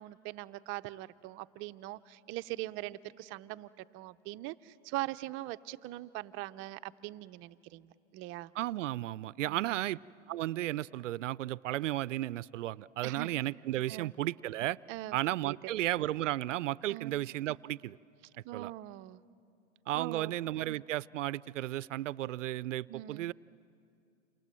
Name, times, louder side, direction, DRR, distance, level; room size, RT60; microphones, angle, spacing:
voice 1, 0.0-8.5 13.0-13.3 13.9-14.1 14.9-15.6 16.9-17.1 18.4-19.2 19.9-20.3 22.9-23.3, right 17 dB, 35° right, 12 dB, 0.6 m, -42 dB
voice 2, 8.6-10.0 10.3-14.8 15.1-18.0 18.5-18.7 19.9-23.3, right 15 dB, 85° right, 20 dB, 0.6 m, -34 dB
29.0 x 27.0 x 7.6 m, 2.5 s
hypercardioid pair, 125°, 36 cm